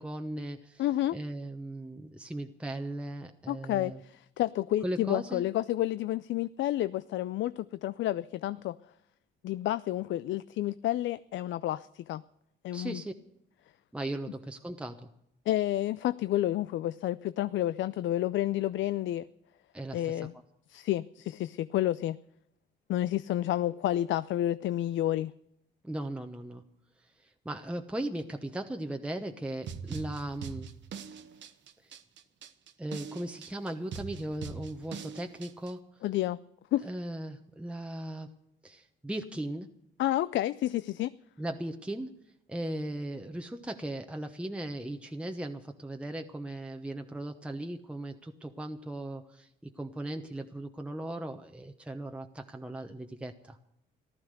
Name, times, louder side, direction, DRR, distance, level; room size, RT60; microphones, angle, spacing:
voice 1, 0.0-0.8 1.1-4.0 4.8-5.4 12.7-13.1 13.9-15.1 19.7-20.2 25.8-26.6 27.0-30.7 31.8-31.9 32.8-35.8 36.8-38.3 38.6-39.7 41.4-42.1 42.5-53.6, right 1 dB, 5° right, 4 dB, 1.0 m, -38 dB
voice 2, 0.8-1.2 3.5-8.8 9.4-12.2 12.6-13.0 15.5-19.2 19.9-20.3 20.7-22.2 22.9-25.3 36.0-36.4 36.7-36.9 40.0-41.1, left 13 dB, 70° left, 15 dB, 0.5 m, -30 dB
sound 1, 29.7-35.7, right 6 dB, 65° right, 1.2 m, -42 dB
15.0 x 12.5 x 6.6 m, 0.77 s
cardioid pair, 90°, 20 cm